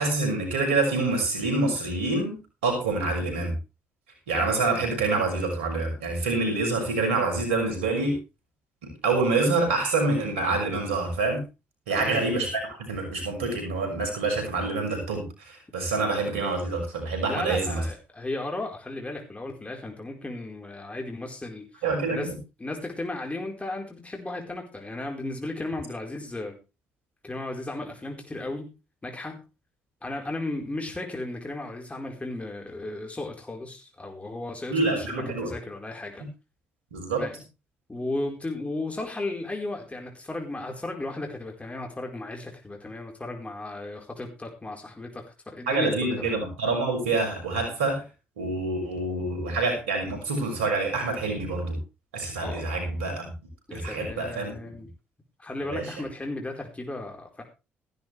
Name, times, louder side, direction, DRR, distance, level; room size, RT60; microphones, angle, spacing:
voice 1, 0.0-3.5 4.3-8.2 8.8-11.4 11.9-17.8 21.8-22.4 34.7-35.5 36.9-37.3 45.7-48.0 48.4-51.8 52.1-53.3 53.7-54.5 55.6-55.9, right 3 dB, 85° right, 3 dB, 6.3 m, -26 dB
voice 2, 11.9-12.2 17.3-21.7 22.1-22.3 22.6-26.6 27.2-28.7 29.0-29.4 30.0-36.2 37.2-37.4 37.9-46.4 52.4-52.6 53.7-54.9 55.4-57.4, left 2 dB, 20° left, 2 dB, 4.5 m, -35 dB
15.0 x 13.0 x 3.4 m, 0.29 s
hypercardioid pair, 45°, 6 cm